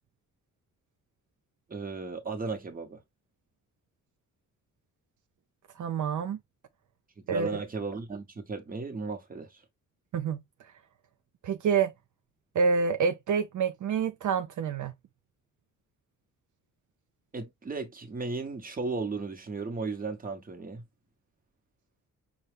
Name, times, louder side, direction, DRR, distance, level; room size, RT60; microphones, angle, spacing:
voice 1, 1.7-3.0 7.3-9.6 17.3-20.8, right 4 dB, 25° right, 1.0 m, -35 dB
voice 2, 5.8-6.4 7.3-7.5 10.1-10.4 11.4-11.9 12.5-14.9, right 5 dB, 65° right, 0.6 m, -27 dB
5.5 x 2.3 x 3.3 m
wide cardioid pair, 140°, 32 cm